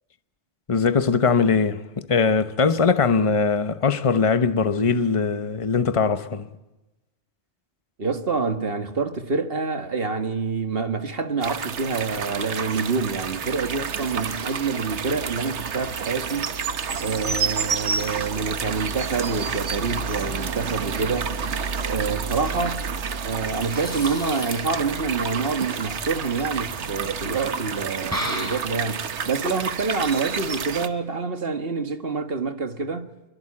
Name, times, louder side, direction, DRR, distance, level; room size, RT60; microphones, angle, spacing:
voice 1, 0.7-6.5, left 5 dB, 30° left, 1.0 m, -21 dB
voice 2, 8.0-16.6 17.0-21.4 21.8-22.8 23.2-33.1, right 4 dB, 55° right, 1.8 m, -27 dB
sound 1, 11.4-30.9, right 6 dB, 80° right, 1.4 m, -29 dB
sound 2, 20.9-29.3, equal, 15° right, 4.5 m, -38 dB
23.5 x 23.0 x 8.6 m
omnidirectional pair, 1.2 m